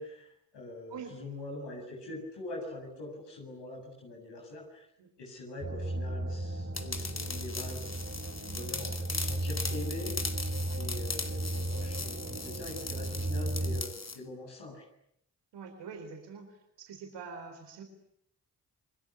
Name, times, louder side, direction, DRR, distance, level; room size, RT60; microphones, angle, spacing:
voice 1, 0.0-4.9 5.2-10.1 10.7-14.9, left 2 dB, 80° left, 1 dB, 7.5 m, -43 dB
sound 1, 5.6-13.8, right 1 dB, 35° right, 3.6 m, -35 dB
sound 2, 6.7-14.2, left 4 dB, 40° left, 2.9 m, -39 dB
voice 2, 15.5-17.8, right 5 dB, 90° right, 4 dB, 4.1 m, -45 dB
28.0 x 20.5 x 10.0 m, 0.74 s
supercardioid pair, 45°, 41 cm